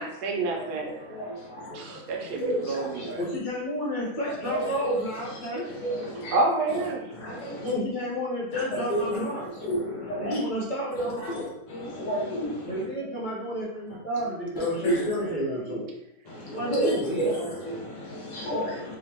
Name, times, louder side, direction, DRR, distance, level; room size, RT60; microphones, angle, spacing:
voice 1, 0.0-0.9 1.7-3.2 6.3-7.1 17.2-17.4, right 3 dB, 90° right, 1 dB, 1.2 m, -28 dB
voice 2, 0.5-2.0 2.3-3.1 4.4-5.3 5.6-6.4 7.2-7.7 8.5-9.2 9.6-10.4 10.9-12.2 14.6-15.3 16.3-19.0, right 1 dB, 85° left, -4 dB, 1.5 m, -31 dB
voice 3, 3.2-5.8 7.6-9.7 10.2-11.4 12.7-15.9 16.5-17.3, equal, 45° left, -5 dB, 0.7 m, -31 dB
3.7 x 2.1 x 2.9 m, 0.84 s
omnidirectional pair, 1.7 m